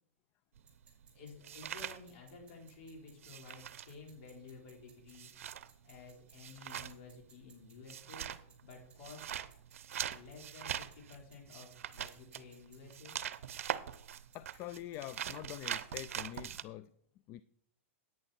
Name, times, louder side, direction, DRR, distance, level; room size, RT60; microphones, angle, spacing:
sound 1, 0.6-2.7 3.0-16.6, right 10 dB, 75° right, 0.7 m, -43 dB
sound 2, 0.7-16.6, right 5 dB, 15° right, 4.5 m, -67 dB
voice 1, 1.1-5.3 5.8-8.3 8.6-9.3 10.1-13.2, left 4 dB, 55° left, 4.3 m, -53 dB
voice 2, 14.3-16.9 17.3-17.4, left 14 dB, 35° left, 0.4 m, -45 dB
10.5 x 9.1 x 4.4 m
hypercardioid pair, 125°, 8 cm